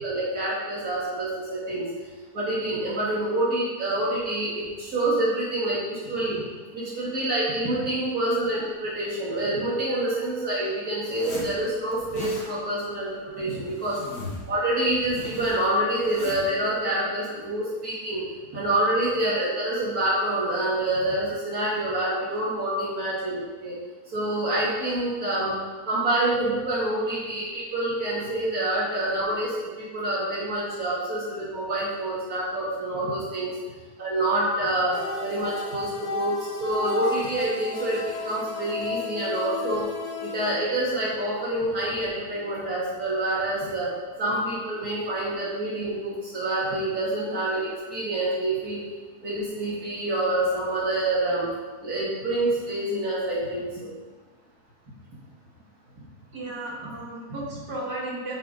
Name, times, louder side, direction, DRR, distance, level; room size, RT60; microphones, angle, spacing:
voice 1, 0.0-1.8 2.3-6.4 6.7-14.0 14.5-18.2 18.5-23.7 24.1-25.6 25.9-33.5 34.0-39.9 40.2-43.9 44.2-48.8 49.2-51.5 51.8-53.9, right 1 dB, 65° right, -8 dB, 3.5 m, -27 dB
Zipper (clothing), 11.0-11.5 11.9-12.5 13.3-14.5 14.8-16.5, left 2 dB, 85° left, 2.4 m, -38 dB
sound 1, 34.9-40.6, left 3 dB, 65° left, 2.3 m, -33 dB
voice 2, 56.3-58.4, right 1 dB, 90° right, -4 dB, 2.3 m, -35 dB
9.2 x 6.7 x 4.0 m, 1.3 s
omnidirectional pair, 1.7 m